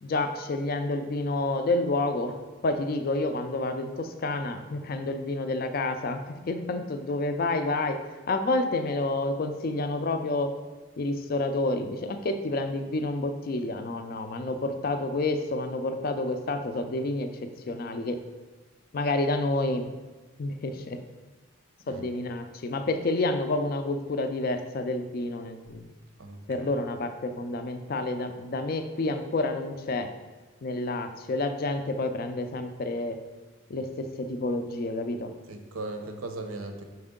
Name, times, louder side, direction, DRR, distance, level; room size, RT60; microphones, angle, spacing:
voice 1, 0.0-10.5 11.0-18.2 18.9-19.9 20.4-21.0 21.9-25.9 26.5-30.1 30.6-33.2 33.7-35.3, left 2 dB, 45° left, 8 dB, 0.4 m, -29 dB
voice 2, 26.2-26.7 35.5-36.8, right 2 dB, 85° right, 5 dB, 0.7 m, -38 dB
6.0 x 4.3 x 3.7 m, 1.2 s
head